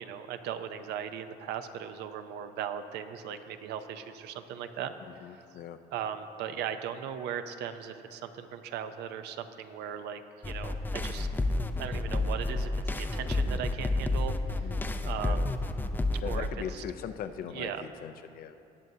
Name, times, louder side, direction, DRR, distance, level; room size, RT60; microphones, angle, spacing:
voice 1, 0.0-4.9 5.9-11.3 11.8-14.7 15.0-15.5 16.2-16.8 17.5-17.8, right 8 dB, 85° right, 9 dB, 0.6 m, -38 dB
voice 2, 5.1-5.8 14.6-14.9 15.2-15.5 16.2-18.6, left 8 dB, 60° left, 9 dB, 0.6 m, -40 dB
sound 1, 10.4-16.5, left 2 dB, 10° left, 0.5 m, -30 dB
18.5 x 7.6 x 2.8 m, 2.7 s
cardioid pair, 110°, 17 cm